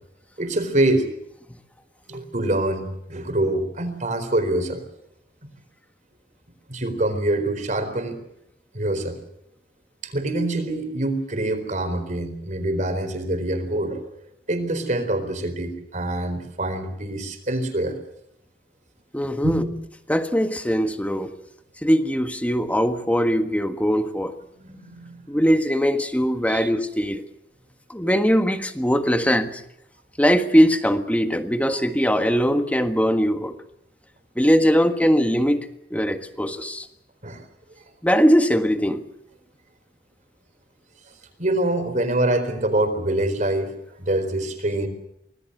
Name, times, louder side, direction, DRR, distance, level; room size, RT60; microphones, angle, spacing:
voice 1, 0.4-1.1 2.1-4.8 6.7-8.2 8.7-9.2 10.0-14.1 14.5-18.0 19.4-19.7 24.6-25.2 26.5-26.7 31.7-31.8 37.2-37.4 41.4-43.7 44.0-44.9, right 1 dB, 45° right, 8 dB, 4.2 m, -25 dB
voice 2, 19.1-19.7 20.1-21.3 21.8-24.3 25.3-27.2 27.9-29.6 30.2-33.5 34.3-36.9 38.0-39.0, equal, 10° left, 7 dB, 1.5 m, -21 dB
25.5 x 19.0 x 6.8 m, 0.78 s
head